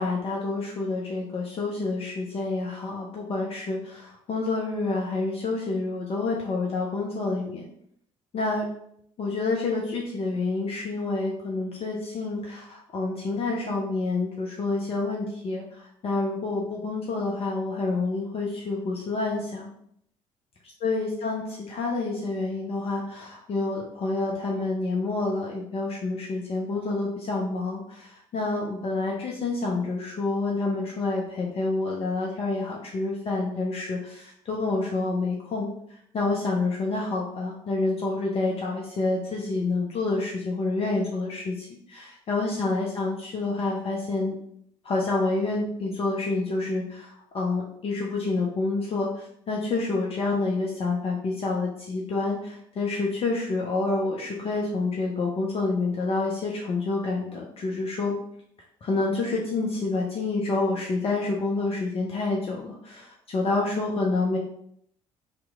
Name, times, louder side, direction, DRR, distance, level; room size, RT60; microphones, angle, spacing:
voice 1, 0.0-7.6 8.3-8.7 9.2-19.7 20.8-44.4 44.8-58.1 58.8-64.4, left 3 dB, 35° left, -2 dB, 0.6 m, -28 dB
2.9 x 2.1 x 3.5 m, 0.69 s
figure-of-eight pair, 50°, 16 cm